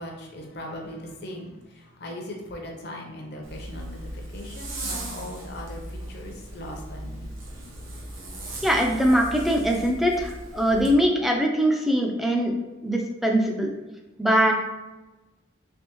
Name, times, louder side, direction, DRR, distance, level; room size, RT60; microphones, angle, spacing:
voice 1, 0.0-7.3, left 1 dB, 55° left, 1 dB, 0.7 m, -39 dB
Zipper (clothing), 3.4-11.0, right 1 dB, 85° right, 1.0 m, -37 dB
voice 2, 8.6-12.5 12.8-13.7 14.2-14.5, equal, ahead, 0 dB, 0.4 m, -22 dB
3.4 x 3.4 x 3.0 m, 1.1 s
head